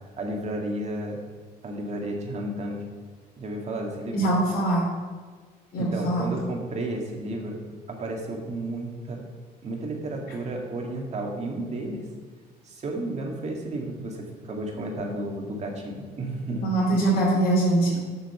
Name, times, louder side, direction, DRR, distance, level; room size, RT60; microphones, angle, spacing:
voice 1, 0.2-1.2 1.6-2.8 3.4-4.3 5.7-7.6 7.9-9.2 9.6-12.1 12.6-16.7, right 1 dB, 40° right, 0 dB, 2.1 m, -32 dB
voice 2, 4.1-4.9 5.7-6.3 16.6-18.0, right 2 dB, 65° left, -8 dB, 3.1 m, -22 dB
7.5 x 6.1 x 6.8 m, 1.5 s
cardioid pair, 110°, 17 cm